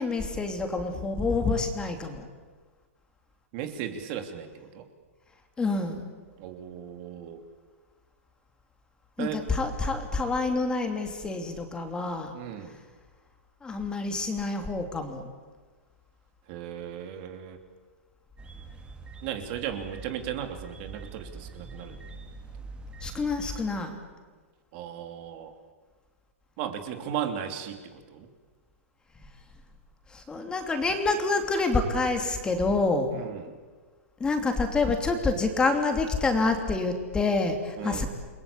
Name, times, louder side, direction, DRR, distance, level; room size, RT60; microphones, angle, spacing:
voice 1, 0.0-2.3 5.6-6.2 9.2-12.3 13.6-15.3 23.0-24.0 30.1-33.2 34.2-38.1, left 3 dB, 10° left, 5 dB, 2.9 m, -27 dB
voice 2, 3.5-4.8 6.4-7.4 9.2-9.5 12.3-12.8 16.5-17.6 19.2-22.0 24.7-25.5 26.6-28.3 33.1-33.5 37.8-38.1, right 9 dB, 40° right, 6 dB, 3.1 m, -36 dB
sound 1, 18.4-23.7, right 3 dB, 15° right, 2.6 m, -44 dB
29.5 x 22.0 x 8.7 m, 1.4 s
hypercardioid pair, 145°, 8 cm